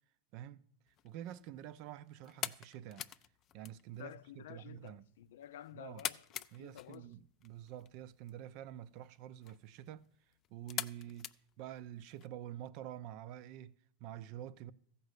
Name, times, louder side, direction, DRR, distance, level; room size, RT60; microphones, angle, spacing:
voice 1, 0.3-0.7 1.0-3.1 3.5-5.1 5.7-6.1 6.5-10.1 10.5-11.3 11.6-14.7, right 11 dB, 45° right, 0.5 m, -48 dB
sound 1, 0.9-12.3, left 11 dB, 30° left, 0.4 m, -47 dB
voice 2, 4.0-7.1, left 11 dB, 90° left, 0.5 m, -52 dB
14.5 x 5.4 x 8.1 m
supercardioid pair, 165°, 0 cm